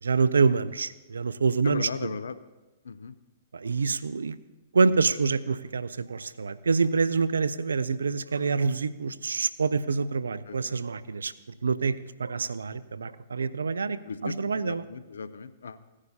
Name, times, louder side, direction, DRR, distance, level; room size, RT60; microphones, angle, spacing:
voice 1, 0.0-2.1 3.5-4.4 4.7-11.3 11.6-11.9 12.2-14.8, right 4 dB, 80° right, 15 dB, 0.5 m, -26 dB
voice 2, 1.6-2.3 2.8-3.1 10.5-10.8 14.1-15.8, left 5 dB, 75° left, 14 dB, 0.6 m, -37 dB
17.0 x 9.8 x 2.8 m, 1.1 s
hypercardioid pair, 115°, 0 cm